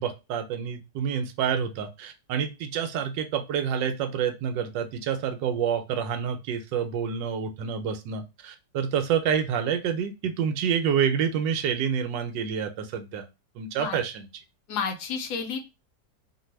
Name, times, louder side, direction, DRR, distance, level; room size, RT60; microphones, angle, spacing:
voice 1, 0.0-13.3 13.5-14.3, right 7 dB, 80° right, 6 dB, 1.3 m, -28 dB
voice 2, 14.7-15.6, left 6 dB, 70° left, 5 dB, 1.1 m, -30 dB
2.9 x 2.6 x 3.0 m, 0.26 s
omnidirectional pair, 1.9 m